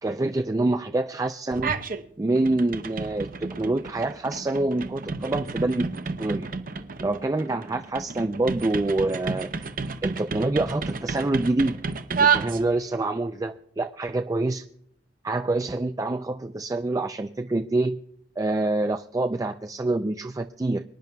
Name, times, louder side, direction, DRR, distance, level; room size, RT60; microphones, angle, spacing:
voice 1, 0.0-1.7 2.2-5.9 6.2-6.5 7.0-9.7 10.0-11.8 12.2-14.7 15.2-18.0 18.4-20.8, right 2 dB, 20° right, 7 dB, 0.4 m, -26 dB
sound 1, 1.5-2.0 2.4-13.0, right 5 dB, 50° right, 0.7 m, -30 dB
24.0 x 10.5 x 2.3 m, 0.67 s
head